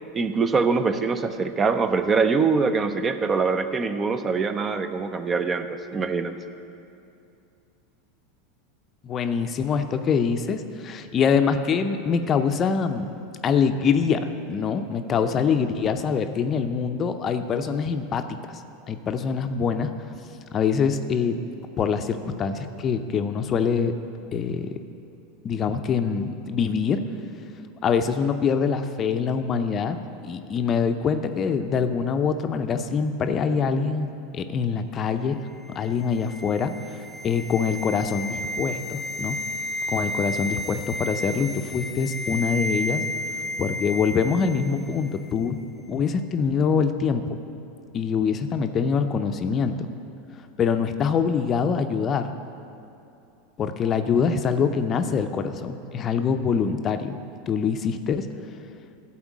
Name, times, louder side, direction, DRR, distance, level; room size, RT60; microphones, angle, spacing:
voice 1, 0.1-6.3, right 4 dB, 25° right, 10 dB, 0.5 m, -23 dB
voice 2, 9.0-13.1 13.4-18.4 18.9-19.9 20.5-21.4 21.8-23.9 24.3-24.7 25.4-27.0 27.8-30.0 30.2-35.4 35.7-36.7 37.2-39.4 39.9-43.0 43.6-45.6 45.9-47.4 47.9-49.9 50.6-52.3 53.6-57.2 57.5-58.3, left 6 dB, 35° left, 8 dB, 0.5 m, -24 dB
sound 1, 35.6-44.9 45.2-45.3, left 1 dB, 10° left, 0.9 m, -32 dB
12.5 x 4.3 x 7.3 m, 2.6 s
hypercardioid pair, 100°, 0 cm